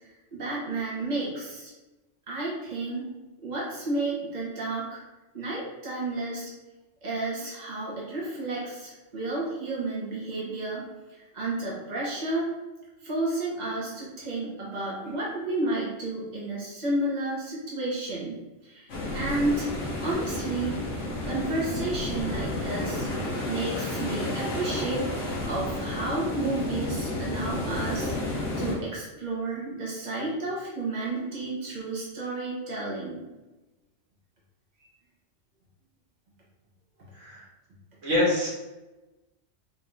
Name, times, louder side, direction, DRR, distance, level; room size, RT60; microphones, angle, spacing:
voice 1, 0.3-1.7 2.3-3.0 3.4-5.0 5.3-6.5 7.0-10.8 11.1-12.5 13.0-18.9 19.1-19.7 20.0-23.1 23.5-25.1 25.4-33.2, right 2 dB, 35° right, -6 dB, 1.3 m, -31 dB
sound 1, 18.9-28.8, left 1 dB, 80° left, 1.2 m, -31 dB
voice 2, 37.1-37.5 38.0-38.5, left 1 dB, 85° right, -6 dB, 1.9 m, -25 dB
4.0 x 2.8 x 3.6 m, 1.1 s
omnidirectional pair, 1.2 m